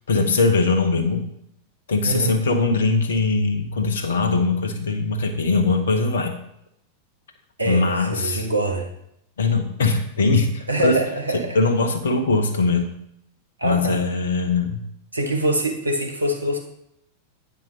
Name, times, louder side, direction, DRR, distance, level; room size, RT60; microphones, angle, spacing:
voice 1, 0.1-1.3 1.9-6.3 7.7-8.5 9.4-10.5 10.8-11.0 11.3-12.9 13.6-14.8, left 3 dB, 65° left, 7 dB, 1.0 m, -21 dB
voice 2, 2.0-2.4 7.6-8.9 10.7-11.6 13.6-14.0 15.1-16.6, right 1 dB, 80° right, 3 dB, 1.2 m, -24 dB
8.9 x 5.2 x 4.0 m, 0.77 s
figure-of-eight pair, 90°, 0 cm